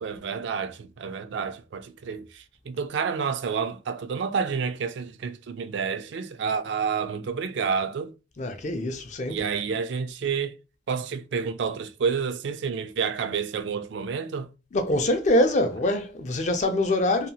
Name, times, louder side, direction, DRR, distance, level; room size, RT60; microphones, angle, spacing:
voice 1, 0.0-8.1 9.3-10.5 10.9-14.5, right 6 dB, 60° right, 0.3 m, -29 dB
voice 2, 8.4-9.4 14.7-17.3, left 1 dB, 35° left, 0.4 m, -24 dB
2.7 x 2.3 x 2.7 m
head